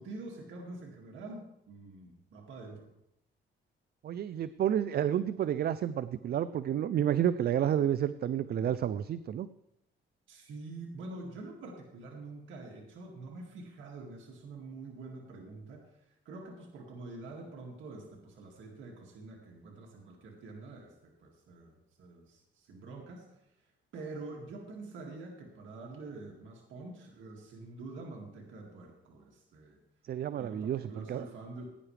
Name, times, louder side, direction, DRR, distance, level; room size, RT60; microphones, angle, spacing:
voice 1, 0.0-2.9 10.3-23.4 23.9-29.8 30.3-31.7, right 3 dB, 75° right, 0 dB, 2.2 m, -46 dB
voice 2, 4.0-9.5 30.1-31.3, right 10 dB, 55° right, 15 dB, 0.5 m, -30 dB
17.5 x 9.9 x 3.3 m, 0.83 s
cardioid pair, 90°, 20 cm